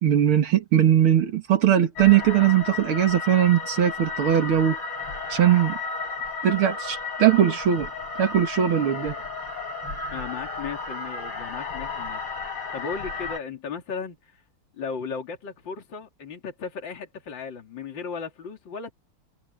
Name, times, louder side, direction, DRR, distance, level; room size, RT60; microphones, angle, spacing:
voice 1, 0.0-4.8 5.3-5.8 6.4-7.9 8.2-9.1, right 10 dB, 80° right, 2.5 m, -20 dB
sound 1, 2.0-13.4, left 4 dB, 80° left, 5.9 m, -33 dB
voice 2, 10.1-14.4 14.7-18.9, left 5 dB, 60° left, 3.2 m, -36 dB
omnidirectional pair, 2.3 m